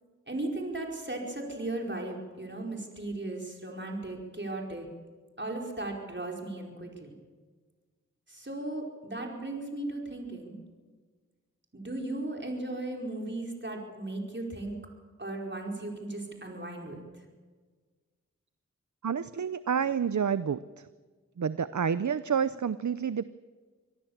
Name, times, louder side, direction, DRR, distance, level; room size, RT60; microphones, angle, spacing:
voice 1, 0.3-4.9 5.4-7.1 8.3-10.6 11.7-14.7 15.2-17.0, right 2 dB, 40° right, 0 dB, 4.8 m, -36 dB
voice 2, 19.0-20.9 21.4-23.3, right 7 dB, 70° right, 15 dB, 0.6 m, -29 dB
25.0 x 18.0 x 7.2 m, 1.5 s
wide cardioid pair, 45°, 30 cm